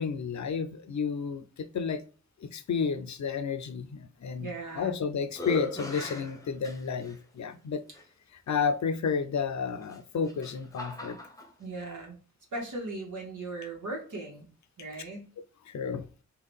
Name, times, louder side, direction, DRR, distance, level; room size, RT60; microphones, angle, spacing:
voice 1, 0.0-2.0 2.4-4.5 4.8-7.8 8.5-11.2 15.7-16.1, left 6 dB, 70° left, 0.5 m, -31 dB
voice 2, 4.4-5.0 11.6-12.2 12.5-14.5 14.8-15.3, right 2 dB, 80° right, 1.2 m, -38 dB
sound 1, 4.5-4.9 5.3-7.2 7.9-8.0 9.8-11.5, left 1 dB, 10° left, 0.8 m, -39 dB
3.7 x 2.4 x 3.3 m
wide cardioid pair, 75°, 30 cm